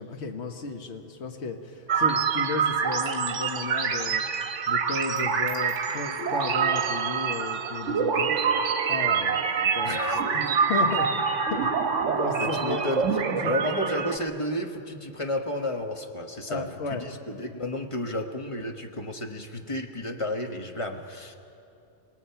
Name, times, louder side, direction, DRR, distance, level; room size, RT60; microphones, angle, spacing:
voice 1, 0.0-4.2 4.7-8.3 8.9-11.2 11.5-11.7 12.1-12.8 13.3-13.5 16.5-17.0, left 4 dB, 60° left, 4 dB, 1.5 m, -34 dB
sound 1, 1.9-14.2, right 6 dB, 75° right, 1.4 m, -26 dB
voice 2, 9.8-10.2 12.4-13.1 13.4-21.3, left 1 dB, 25° left, 4 dB, 1.2 m, -32 dB
26.5 x 18.5 x 5.8 m, 2.6 s
omnidirectional pair, 1.3 m